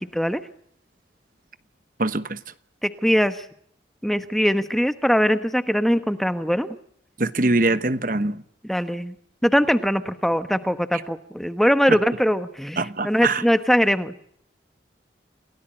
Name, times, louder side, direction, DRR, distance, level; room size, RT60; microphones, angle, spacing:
voice 1, 2.0-2.4 7.2-8.4 11.9-12.0 12.8-13.4, right 2 dB, 45° right, 1.2 m, -23 dB
voice 2, 2.8-3.4 4.0-6.7 8.7-9.1 9.4-14.2, equal, ahead, 1.2 m, -21 dB
29.0 x 17.5 x 8.9 m
head